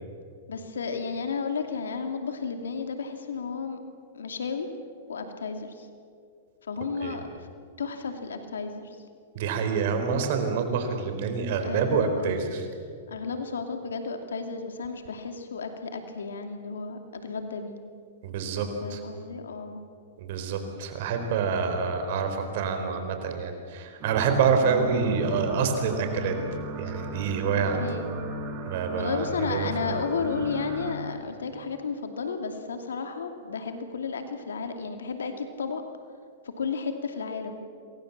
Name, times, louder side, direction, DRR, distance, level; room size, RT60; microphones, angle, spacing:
voice 1, 0.5-3.8 4.1-4.7 5.1-5.9 6.7-7.2 7.8-9.0 11.5-12.3 13.1-17.8 18.8-19.8 27.8-28.1 29.0-35.8 36.4-37.6, left 5 dB, 85° left, 6 dB, 2.6 m, -33 dB
voice 2, 9.3-12.7 18.2-19.0 20.2-26.4 26.8-27.9 28.6-30.0, right 5 dB, 60° right, 6 dB, 4.5 m, -27 dB
sound 1, 24.0-31.0, right 2 dB, 35° right, 7.2 m, -36 dB
27.0 x 23.0 x 7.5 m, 2.3 s
hypercardioid pair, 120°, 0 cm